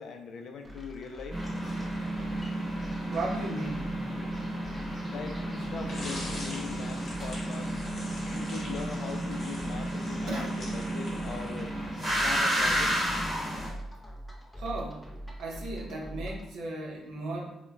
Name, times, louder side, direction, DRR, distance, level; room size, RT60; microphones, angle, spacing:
voice 1, 0.0-1.4 5.1-7.7 8.3-11.7 12.2-13.0, left 5 dB, 65° left, 5 dB, 0.3 m, -41 dB
sound 1, 0.6-16.5, right 1 dB, 5° left, 0.5 m, -44 dB
sound 2, 1.3-13.7, right 1 dB, 15° right, 1.0 m, -32 dB
voice 2, 3.1-4.0 10.3-10.5 14.6-15.1 15.4-17.6, right 2 dB, 80° right, -1 dB, 0.6 m, -35 dB
sound 3, 5.9-11.8, left 1 dB, 50° left, 0.8 m, -43 dB
2.3 x 2.1 x 3.1 m, 0.92 s
cardioid pair, 90°, 0 cm